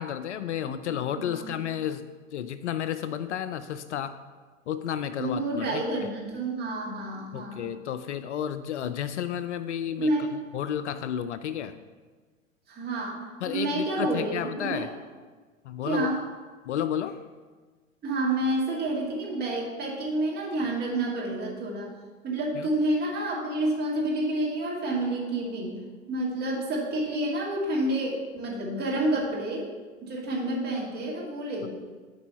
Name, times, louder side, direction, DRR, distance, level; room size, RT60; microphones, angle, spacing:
voice 1, 0.0-2.0 2.3-4.2 4.7-5.8 7.3-10.1 10.5-11.8 13.4-14.9 15.6-16.1 16.7-17.2 22.5-22.7, left 9 dB, 60° left, 12 dB, 0.5 m, -32 dB
voice 2, 5.2-7.6 10.0-10.4 12.7-13.2 13.5-14.9 15.9-16.2 18.0-21.9 22.2-25.8 26.1-29.7 30.0-31.7, right 1 dB, 25° right, -2 dB, 2.2 m, -29 dB
8.2 x 4.8 x 5.7 m, 1.4 s
figure-of-eight pair, 95°, 39 cm